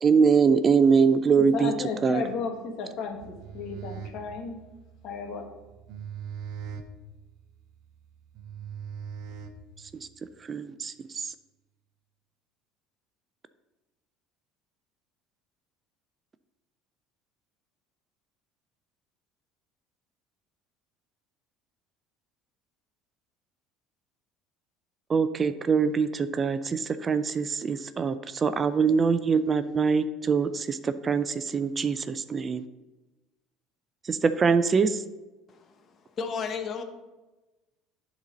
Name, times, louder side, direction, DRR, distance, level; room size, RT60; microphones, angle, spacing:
voice 1, 0.0-1.7 2.0-2.2 10.5-11.2 25.1-32.6 34.1-35.0, right 5 dB, 35° right, 0.5 m, -23 dB
voice 2, 1.3-4.6 5.0-5.5, left 5 dB, 60° left, 1.5 m, -34 dB
sound 1, 3.1-10.1, right 7 dB, 60° right, 0.8 m, -41 dB
voice 3, 36.2-36.8, left 5 dB, 45° left, 1.0 m, -32 dB
10.5 x 4.1 x 3.9 m
hypercardioid pair, 70°, 0 cm